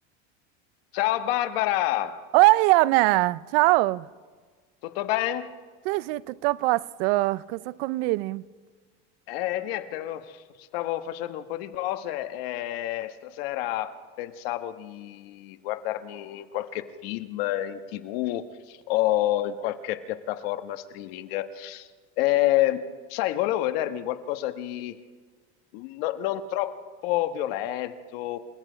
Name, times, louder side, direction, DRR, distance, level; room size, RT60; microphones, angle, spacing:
voice 1, 0.9-2.2 4.8-5.5 9.3-10.4 10.7-21.9 22.2-22.8 23.1-24.9 25.7-28.4, left 14 dB, 85° left, 1.4 m, -28 dB
voice 2, 2.3-4.1 5.8-8.4, right 19 dB, 75° right, 0.6 m, -22 dB
29.5 x 17.5 x 5.1 m
cardioid pair, 165°, 29 cm